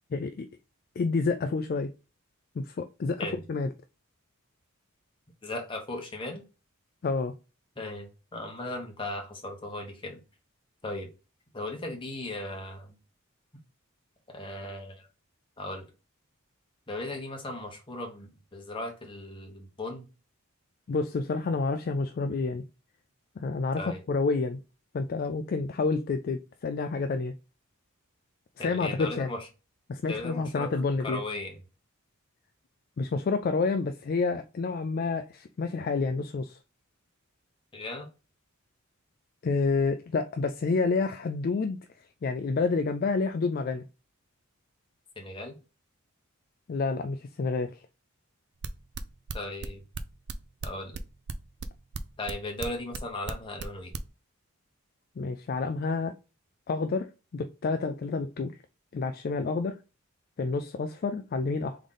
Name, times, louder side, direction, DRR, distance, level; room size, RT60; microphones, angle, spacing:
voice 1, 0.1-0.5 1.0-1.9 2.6-3.7 7.0-7.3 20.9-22.6 23.4-23.8 24.1-24.6 24.9-27.3 28.6-29.3 29.9-31.2 33.0-36.6 39.4-41.8 42.2-43.8 46.7-47.8 55.2-56.1 56.7-58.6 58.9-59.8 60.4-61.8, left 4 dB, 45° left, 0.3 m, -29 dB
voice 2, 5.4-6.4 7.8-10.2 10.8-11.1 11.5-12.9 14.3-15.1 15.6-15.9 16.9-20.1 23.8-24.0 28.6-29.5 30.1-30.7 31.0-31.6 37.7-38.1 45.2-45.6 49.3-49.8 50.6-50.9 52.2-53.9, left 2 dB, 25° left, 1.1 m, -37 dB
sound 1, 48.6-54.1, right 6 dB, 55° right, 0.4 m, -36 dB
3.7 x 3.5 x 3.9 m
head